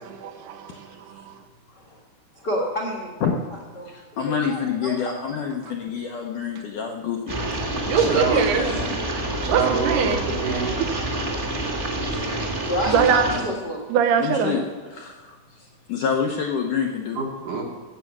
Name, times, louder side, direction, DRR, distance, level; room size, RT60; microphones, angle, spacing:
voice 1, 0.1-1.4 7.9-8.7 9.4-10.3 12.8-13.3 13.9-14.6, right 7 dB, 75° right, 7 dB, 2.8 m, -23 dB
voice 2, 2.3-3.4 3.8-5.7 7.9-8.9 12.1-13.8, left 1 dB, 50° left, -1 dB, 1.2 m, -30 dB
voice 3, 3.9-7.2 14.2-17.2, left 7 dB, 75° left, 1 dB, 1.9 m, -27 dB
sound 1, 7.3-13.4, right 1 dB, 35° right, 0.8 m, -28 dB
voice 4, 8.0-8.4 9.4-10.8 17.2-17.6, right 4 dB, 60° right, 0 dB, 2.4 m, -26 dB
17.0 x 7.5 x 6.0 m, 1.4 s
omnidirectional pair, 4.8 m